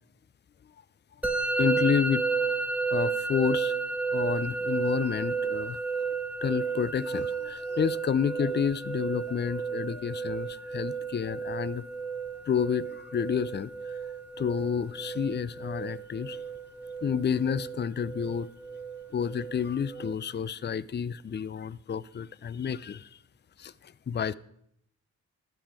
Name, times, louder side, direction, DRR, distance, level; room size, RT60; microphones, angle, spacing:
Musical instrument, 1.2-20.1, right 4 dB, 5° right, 1.2 m, -32 dB
voice 1, 1.6-2.5 2.9-3.8 4.1-5.8 6.4-11.8 12.5-14.0 14.4-16.4 17.0-18.5 19.1-23.1 23.6-24.3, left 7 dB, 35° left, 0.5 m, -30 dB
12.0 x 5.7 x 8.7 m
cardioid pair, 65°, 32 cm